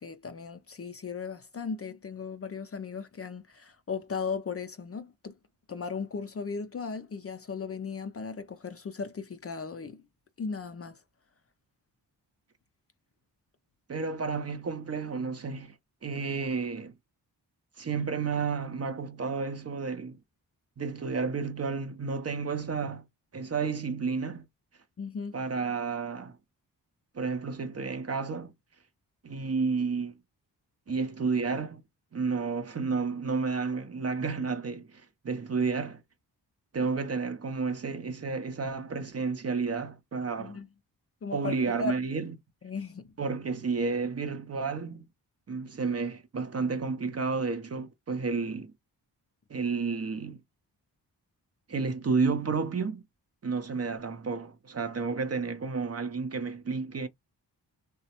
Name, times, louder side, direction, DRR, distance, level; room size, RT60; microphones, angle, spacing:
voice 1, 0.0-5.3 5.7-10.0 10.4-11.0 25.0-25.4 40.4-40.7 41.2-42.0 42.6-43.1, left 5 dB, 35° left, 0.5 m, -37 dB
voice 2, 13.9-15.8 16.0-16.9 17.8-20.2 20.8-23.1 23.3-24.4 25.3-26.4 27.1-28.5 29.2-30.1 30.9-31.8 32.1-36.0 36.7-40.6 41.3-42.3 43.2-45.0 45.5-48.7 49.5-50.4 51.7-53.0 53.4-57.1, right 4 dB, 35° right, 0.6 m, -31 dB
3.0 x 2.1 x 2.8 m
supercardioid pair, 40°, 44 cm